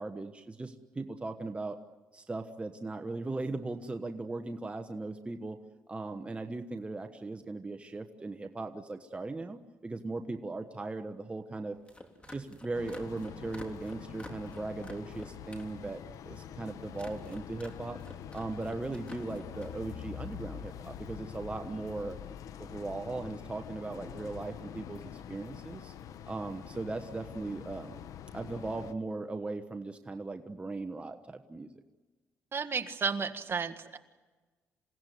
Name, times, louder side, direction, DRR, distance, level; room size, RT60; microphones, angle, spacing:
voice 1, 0.0-1.8 2.1-5.6 5.9-11.8 12.3-18.0 18.3-22.2 22.6-25.9 26.3-28.0 28.3-31.7, right 3 dB, 20° right, 6 dB, 1.2 m, -38 dB
sound 1, 11.7-15.7 16.0-16.5 16.9-17.7 18.0-19.7, left 1 dB, 20° left, 3.6 m, -49 dB
sound 2, 12.7-28.9, left 9 dB, 75° left, 0.9 m, -45 dB
voice 2, 32.5-34.0, right 5 dB, 40° right, 8 dB, 1.7 m, -33 dB
28.0 x 17.0 x 9.4 m, 1.3 s
cardioid pair, 95°, 6 cm